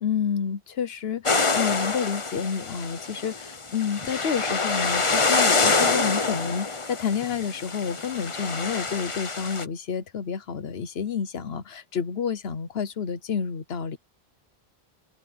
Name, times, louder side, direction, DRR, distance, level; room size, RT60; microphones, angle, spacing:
voice 1, 0.0-14.0, left 7 dB, 75° left, 1.2 m, -29 dB
sound 1, 1.3-9.6, left 4 dB, 30° left, 1.1 m, -26 dB
open air
omnidirectional pair, 1.1 m